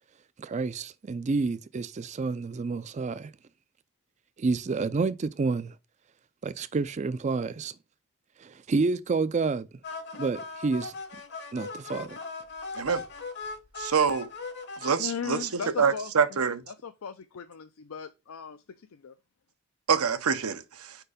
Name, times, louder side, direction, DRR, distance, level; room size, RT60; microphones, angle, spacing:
voice 1, 0.4-3.3 4.4-5.7 6.4-7.7 8.4-9.7 10.1-10.9 11.5-12.2, right 4 dB, 30° right, 0.4 m, -29 dB
sound 1, 9.8-14.9, left 4 dB, 50° left, 1.0 m, -39 dB
voice 2, 13.8-14.3 14.8-15.5 15.8-16.6 19.9-21.0, right 6 dB, 85° right, 0.7 m, -26 dB
voice 3, 15.0-16.4 16.7-19.1, left 6 dB, 70° left, 0.5 m, -38 dB
4.7 x 4.6 x 4.9 m
head